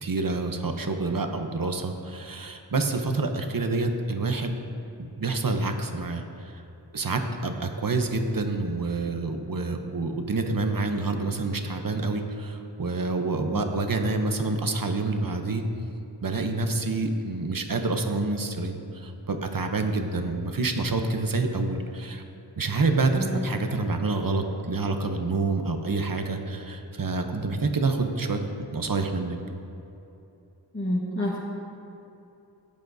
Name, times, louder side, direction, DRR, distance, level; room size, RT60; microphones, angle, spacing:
voice 1, 0.0-4.6 5.2-6.2 6.5-6.6 6.9-15.6 16.2-22.2 22.6-29.4, right 3 dB, 50° right, 5 dB, 0.8 m, -27 dB
voice 2, 30.7-31.4, equal, 30° left, -6 dB, 1.3 m, -28 dB
14.0 x 8.3 x 2.7 m, 2.8 s
wide cardioid pair, 65°, 44 cm